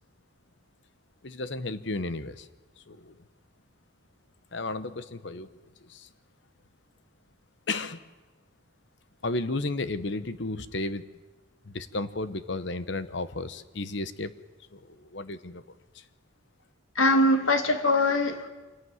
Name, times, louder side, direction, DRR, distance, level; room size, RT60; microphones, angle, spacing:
voice 1, 1.2-2.5 2.9-3.2 4.5-5.5 5.8-6.1 7.7-8.0 9.2-11.0 11.6-14.3 14.7-15.6 15.9-16.0, left 2 dB, 60° left, 13 dB, 1.0 m, -33 dB
voice 2, 17.0-18.5, left 1 dB, 80° left, 8 dB, 2.0 m, -22 dB
25.0 x 17.5 x 9.5 m, 1.2 s
head